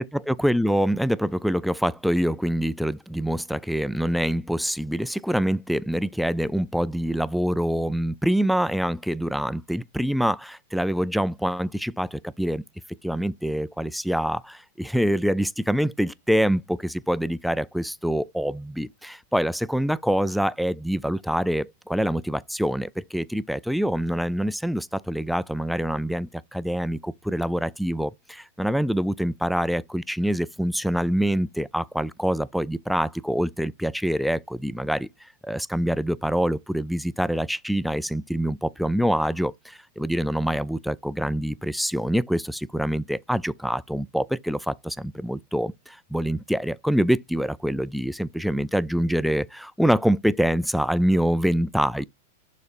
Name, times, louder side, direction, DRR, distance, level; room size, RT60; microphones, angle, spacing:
voice 1, 0.0-12.6 13.0-52.0, equal, ahead, 0.3 m, -25 dB
12.0 x 4.2 x 2.5 m
hypercardioid pair, 105°, 0 cm